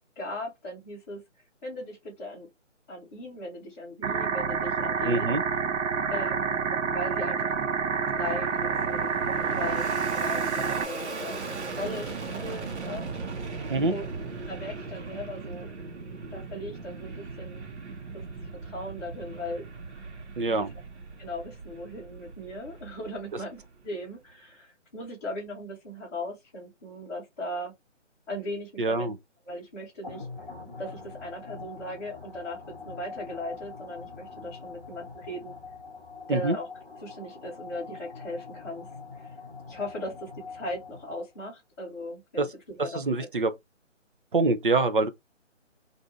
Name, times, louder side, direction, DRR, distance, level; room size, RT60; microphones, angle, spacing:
voice 1, 0.2-1.2 1.6-2.5 2.9-5.4 6.1-7.5 8.1-9.1 9.5-13.0 13.4-13.5 13.9-14.0 14.5-15.7 16.3-17.7 18.1-19.6 20.4-20.7 21.2-27.7 28.3-29.1 29.4-30.3 30.8-35.5 36.3-36.7 37.0-38.9 39.1-39.3 39.7-43.3, left 1 dB, 15° left, 1.0 m, -38 dB
sound 1, 4.0-10.8, right 5 dB, 80° right, 0.7 m, -28 dB
voice 2, 5.0-5.4 13.7-14.0 20.4-20.7 28.8-29.1 36.3-36.6 42.4-42.5 42.8-43.5 44.3-45.1, right 3 dB, 45° right, 0.5 m, -25 dB
Fixed-wing aircraft airplane, 7.4-24.0, right 4 dB, 60° right, 1.1 m, -39 dB
sound 2, 30.0-41.4, left 4 dB, 10° right, 1.1 m, -44 dB
2.6 x 2.5 x 4.2 m
hypercardioid pair, 165°, 38 cm